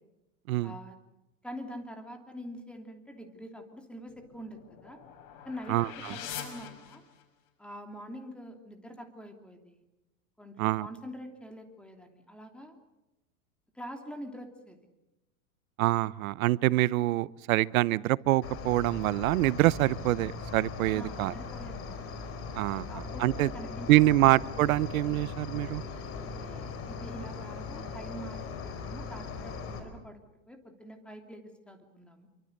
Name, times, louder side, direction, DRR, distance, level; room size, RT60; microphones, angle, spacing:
voice 1, 0.6-1.0 1.4-5.0 5.4-7.0 7.6-9.8 10.4-12.7 13.7-14.8 20.9-22.0 22.7-24.3 26.2-30.2 30.5-32.3, equal, ahead, 5 dB, 2.9 m, -45 dB
sound 1, 4.1-7.5, left 9 dB, 50° left, 5.8 m, -44 dB
voice 2, 5.7-6.1 10.6-10.9 15.8-21.3 22.5-23.5 23.9-25.8, right 16 dB, 75° right, 20 dB, 0.9 m, -25 dB
Cricket, 18.4-29.8, left 4 dB, 30° left, 4.7 m, -39 dB
27.0 x 24.5 x 6.7 m, 0.98 s
supercardioid pair, 140°, 42 cm